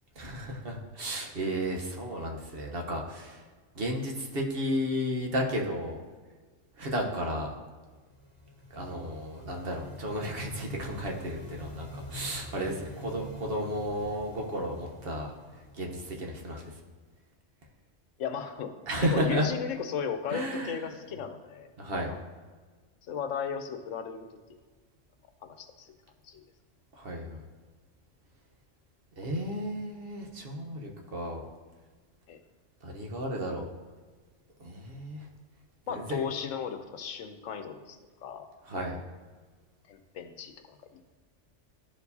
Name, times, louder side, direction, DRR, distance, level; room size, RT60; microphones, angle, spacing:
voice 1, 0.2-3.5 3.7-6.0 6.8-7.5 8.7-15.3 15.7-16.8 18.9-19.5 20.3-20.8 21.8-22.1 26.9-27.4 29.2-31.5 32.8-33.7 34.6-35.3 35.9-36.2 38.6-39.0, equal, 50° right, 1 dB, 1.1 m, -33 dB
sound 1, 7.8-16.5, equal, 25° right, 1.0 m, -46 dB
voice 2, 18.2-18.7 19.0-21.7 22.1-22.2 23.1-24.3 25.4-25.9 26.2-26.4 32.3-32.4 35.9-38.5 39.9-40.8, left 7 dB, 90° left, 8 dB, 1.1 m, -35 dB
12.0 x 4.5 x 2.7 m, 1.4 s
omnidirectional pair, 1.3 m